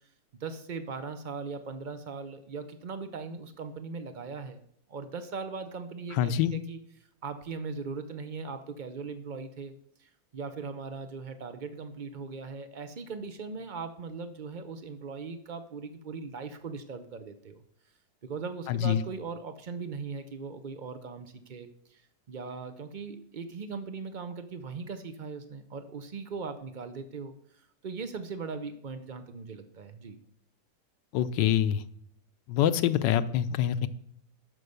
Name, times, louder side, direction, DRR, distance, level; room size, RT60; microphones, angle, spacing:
voice 1, 0.4-4.6 4.9-6.8 7.2-9.7 10.0-17.6 18.2-22.0 22.3-30.2 33.8-33.9, right 4 dB, 75° right, 9 dB, 0.4 m, -39 dB
voice 2, 6.2-6.5 18.7-19.0 31.1-31.8 32.5-33.9, left 10 dB, 80° left, 13 dB, 1.3 m, -25 dB
12.5 x 5.4 x 6.6 m, 0.67 s
omnidirectional pair, 1.9 m